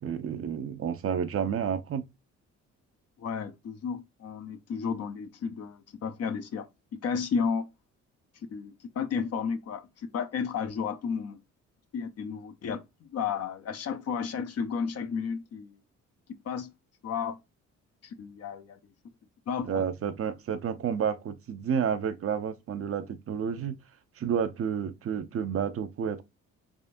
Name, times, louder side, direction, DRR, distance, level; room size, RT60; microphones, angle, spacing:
voice 1, 0.0-2.0 19.6-23.8 24.2-26.2, right 7 dB, 50° right, 0.6 m, -30 dB
voice 2, 3.2-6.7 7.0-7.6 8.5-11.4 11.9-15.8 16.5-16.7 17.0-17.4 18.0-18.8 19.5-19.8, left 6 dB, 55° left, 0.7 m, -33 dB
3.6 x 3.3 x 2.5 m
cardioid pair, 90°, 30 cm